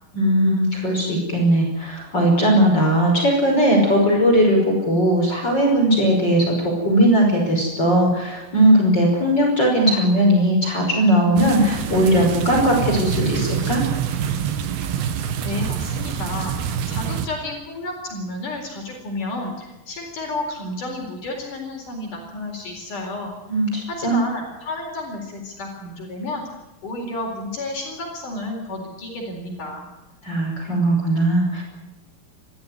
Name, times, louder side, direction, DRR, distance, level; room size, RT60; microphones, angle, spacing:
voice 1, 0.1-13.8 23.5-24.2 30.2-31.6, right 1 dB, 25° left, 0 dB, 5.9 m, -18 dB
sound 1, 11.4-17.3, right 8 dB, 80° right, 3.4 m, -26 dB
voice 2, 15.4-23.3 23.9-26.4 26.8-29.9, left 2 dB, 55° left, 1 dB, 5.6 m, -31 dB
29.5 x 13.0 x 9.7 m, 1.0 s
omnidirectional pair, 4.3 m